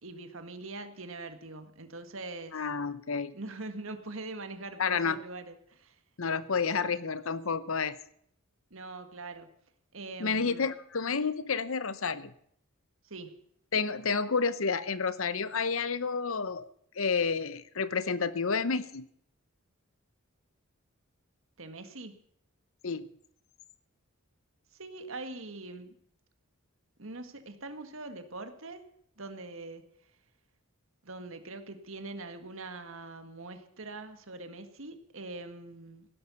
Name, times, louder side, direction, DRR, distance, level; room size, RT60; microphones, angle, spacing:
voice 1, 0.0-2.6 3.3-6.0 8.7-9.5 9.9-10.7 13.0-13.4 21.6-22.2 24.7-26.0 27.0-28.9 29.2-29.8 31.0-36.1, right 2 dB, 65° right, 8 dB, 1.8 m, -43 dB
voice 2, 2.5-3.3 4.8-5.2 6.2-8.0 10.2-12.3 13.7-16.7 17.0-19.1 22.8-23.1, left 5 dB, 70° left, 15 dB, 0.8 m, -30 dB
16.0 x 11.5 x 7.0 m, 0.69 s
head